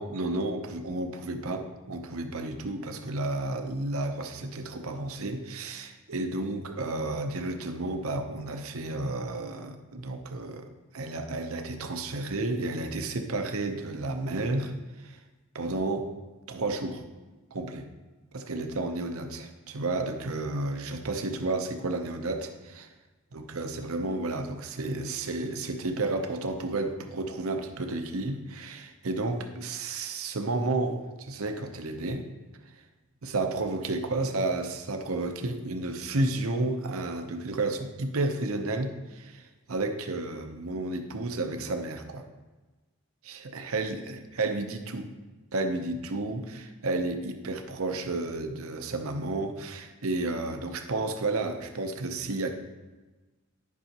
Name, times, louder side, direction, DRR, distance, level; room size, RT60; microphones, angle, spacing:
voice 1, 0.0-10.7 10.9-14.7 15.0-15.2 15.5-16.1 16.5-17.0 17.5-17.9 18.3-22.9 23.3-32.3 33.2-42.3 43.2-45.1 45.5-52.5, right 2 dB, 75° right, 6 dB, 0.7 m, -32 dB
10.5 x 5.6 x 2.9 m, 1.2 s
head